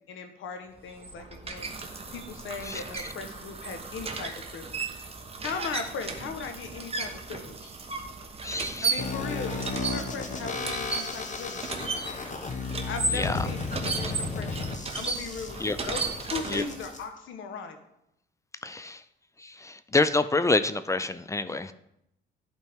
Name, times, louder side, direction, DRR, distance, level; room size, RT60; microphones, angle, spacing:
voice 1, 0.0-1.7 2.1-4.8 5.4-7.7 8.8-11.8 12.9-17.8, left 5 dB, 80° left, 6 dB, 1.1 m, -38 dB
sound 1, 0.8-17.0, right 4 dB, 30° right, 1.0 m, -35 dB
voice 2, 8.4-9.0 13.1-13.4 15.6-15.8 16.5-16.6 18.6-19.0 19.4-21.7, left 3 dB, 15° left, 12 dB, 0.4 m, -27 dB
sound 2, 9.0-17.0, left 3 dB, 35° left, 1.0 m, -34 dB
10.5 x 4.4 x 3.6 m, 0.80 s
cardioid pair, 90°, 20 cm